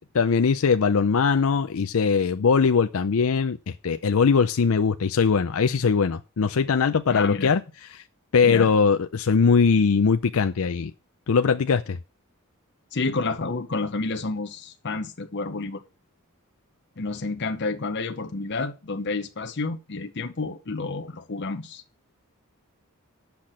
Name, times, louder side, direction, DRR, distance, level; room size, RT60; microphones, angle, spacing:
voice 1, 0.1-7.6 7.9-8.0 8.3-10.9 11.3-12.0, left 5 dB, 70° left, 0.5 m, -21 dB
voice 2, 7.1-7.6 8.4-8.7 12.9-15.8 17.0-21.8, left 3 dB, 55° left, 0.9 m, -30 dB
8.5 x 5.9 x 7.5 m
head